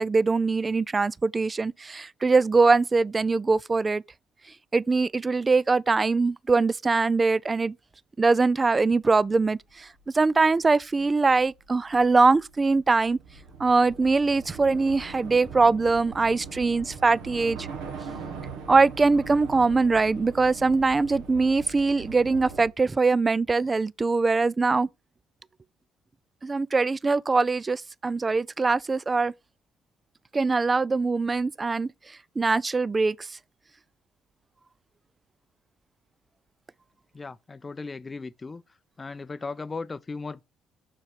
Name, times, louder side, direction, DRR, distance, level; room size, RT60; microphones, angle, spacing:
voice 1, 0.0-4.0 4.7-7.7 8.2-9.9 10.1-13.2 13.6-17.7 18.7-24.9 26.4-29.3 30.3-31.9 32.4-33.2, right 3 dB, 30° right, 0.3 m, -22 dB
Train / Subway metro underground, 9.7-22.7, right 5 dB, 75° right, 1.5 m, -41 dB
voice 2, 37.1-38.6 39.0-40.4, left 4 dB, 30° left, 0.5 m, -36 dB
6.5 x 4.6 x 4.8 m
hypercardioid pair, 50°, 0 cm